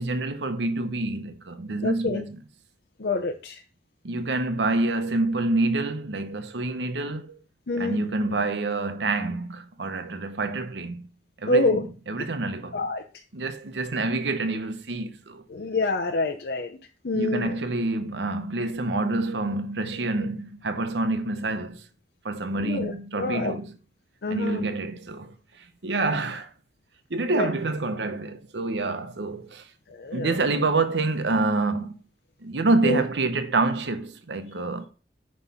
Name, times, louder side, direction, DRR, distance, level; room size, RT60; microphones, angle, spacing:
voice 1, 0.0-2.4 4.0-7.4 7.8-11.1 11.4-11.8 12.1-12.9 13.3-15.4 17.1-21.8 22.2-23.6 24.3-26.5 27.1-29.7 30.1-31.9 32.4-34.9, right 2 dB, 85° right, 0.9 m, -27 dB
voice 2, 1.8-2.2 3.0-3.6 7.7-8.0 11.5-11.8 12.7-13.0 15.5-16.8 17.0-17.5 22.5-23.5 24.2-24.6 27.3-27.5 29.9-30.4 32.8-33.0, left 2 dB, 70° left, 0.7 m, -26 dB
9.6 x 3.2 x 5.6 m
head